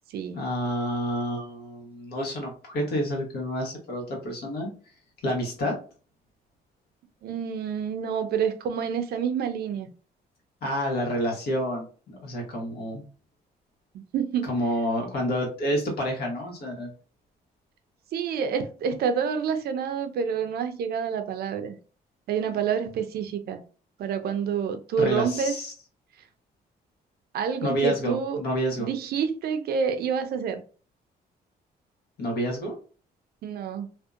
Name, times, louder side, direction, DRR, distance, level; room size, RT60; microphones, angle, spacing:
voice 1, 0.3-4.7 5.2-5.8 10.6-13.0 14.4-16.9 25.0-25.7 27.6-28.9 32.2-32.8, equal, 70° left, 1.1 m, -29 dB
voice 2, 7.2-9.9 13.9-14.6 18.1-21.8 22.3-23.6 24.0-25.5 27.3-28.4 28.8-30.6 33.4-33.9, right 7 dB, 70° right, 0.5 m, -28 dB
2.6 x 2.1 x 2.3 m
cardioid pair, 125°, 17 cm